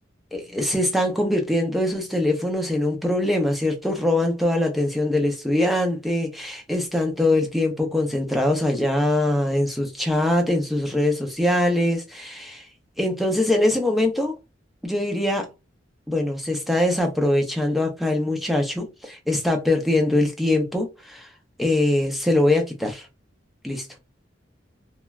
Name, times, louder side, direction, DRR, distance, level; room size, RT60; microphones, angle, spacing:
voice 1, 0.3-12.6 13.0-14.3 14.8-15.5 16.1-21.3 21.6-23.1 23.6-23.8, left 1 dB, ahead, 0.5 m, -22 dB
3.1 x 2.2 x 2.3 m
head